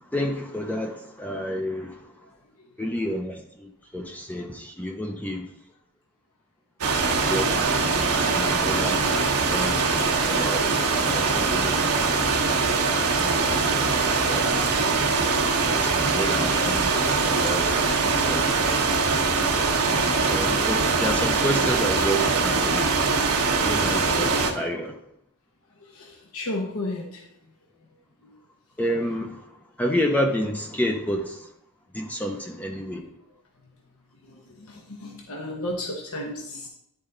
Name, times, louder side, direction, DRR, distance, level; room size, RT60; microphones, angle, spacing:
voice 1, 0.0-2.1 2.8-5.5 7.3-9.0 9.5-10.7 11.0-11.9 13.2-14.8 15.6-17.9 18.3-18.8 20.3-23.0 23.6-25.0 28.8-31.5 31.9-33.0, equal, 5° left, 2 dB, 0.6 m, -30 dB
sound 1, 6.8-24.5, right 4 dB, 80° right, 1.2 m, -22 dB
voice 2, 25.8-27.3 28.2-28.3 33.1-33.2 34.2-36.7, left 1 dB, 70° left, 0 dB, 1.0 m, -34 dB
10.5 x 4.2 x 3.8 m, 0.77 s
head